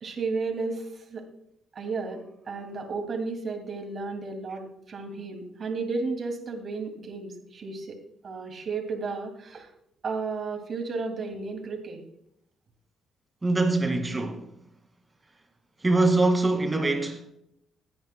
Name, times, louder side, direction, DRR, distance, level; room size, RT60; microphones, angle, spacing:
voice 1, 0.0-1.3 1.7-9.7 10.0-12.0, right 4 dB, 50° right, 2.5 m, -33 dB
voice 2, 13.4-14.5 15.8-17.3, right 2 dB, 20° right, 2.1 m, -23 dB
21.0 x 9.4 x 2.2 m
cardioid pair, 90°, 0 cm